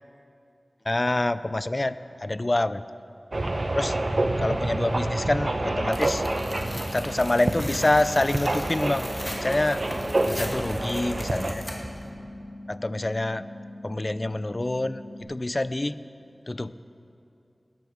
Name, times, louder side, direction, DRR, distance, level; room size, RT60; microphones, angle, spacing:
voice 1, 0.9-2.8 3.8-4.0 4.4-6.2 6.9-9.1 9.4-9.8 10.3-11.6 12.7-13.4 13.8-15.0 15.3-16.0 16.5-16.8, left 2 dB, 40° left, 15 dB, 0.4 m, -26 dB
sound 1, 3.3-11.5, right 2 dB, 50° right, 0.9 m, -28 dB
sound 2, 5.2-15.2, left 1 dB, 55° left, 3.4 m, -42 dB
Tearing, 5.9-12.0, equal, 15° left, 2.2 m, -39 dB
19.5 x 8.2 x 6.4 m, 2.6 s
wide cardioid pair, 65°, 0 cm